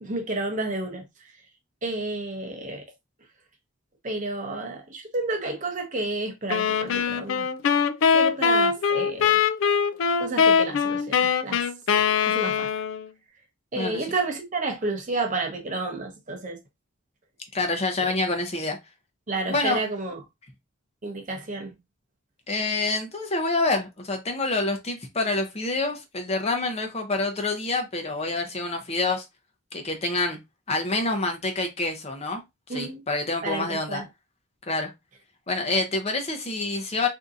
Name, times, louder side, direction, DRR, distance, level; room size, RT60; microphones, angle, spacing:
voice 1, 0.0-1.3 1.8-2.9 4.0-7.7 8.1-9.4 10.2-11.7 12.3-12.7 13.7-16.6 18.0-18.1 19.3-20.2 21.0-21.7 32.7-33.0 33.4-34.1, right 2 dB, 35° right, 0.7 m, -31 dB
sound 1, 6.5-13.1, left 6 dB, 70° left, 0.3 m, -22 dB
voice 2, 13.8-14.1 17.5-18.8 19.5-19.8 22.5-29.3 29.7-30.4 30.7-32.4 32.7-34.0 34.7-34.9 35.5-37.1, left 2 dB, 30° left, 0.6 m, -27 dB
3.6 x 2.7 x 2.6 m
head